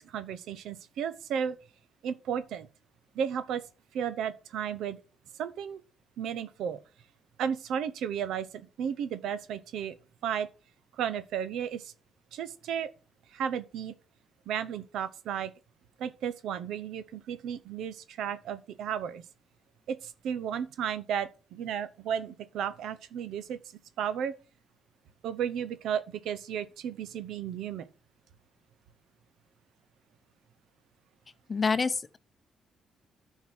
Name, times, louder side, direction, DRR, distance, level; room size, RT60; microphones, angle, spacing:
voice 1, 0.0-1.6 2.0-2.7 3.1-3.6 3.9-5.0 5.4-5.8 6.2-6.8 7.4-10.0 10.2-10.5 10.9-11.9 12.3-12.9 13.3-13.9 14.5-15.5 16.0-19.2 19.9-23.6 24.0-24.3 25.2-27.9, right 8 dB, 80° right, 0.8 m, -33 dB
voice 2, 31.5-32.2, left 4 dB, 30° left, 0.7 m, -27 dB
10.5 x 4.6 x 6.0 m
cardioid pair, 90°, 0 cm